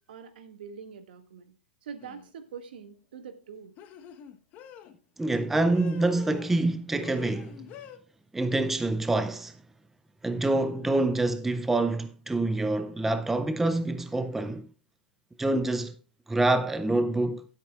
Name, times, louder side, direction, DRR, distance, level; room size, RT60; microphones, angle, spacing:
voice 1, 0.1-1.5 1.8-3.7, right 6 dB, 65° right, 1.8 m, -44 dB
sound 1, 2.0-2.3 3.8-4.9 5.7-6.7 7.0-8.0, left 10 dB, 30° left, 1.0 m, -46 dB
voice 2, 5.2-7.7 8.3-9.5 10.2-14.7 15.4-15.9 16.3-17.5, right 2 dB, 5° right, 0.4 m, -26 dB
16.5 x 8.3 x 2.4 m
hypercardioid pair, 135°, 6 cm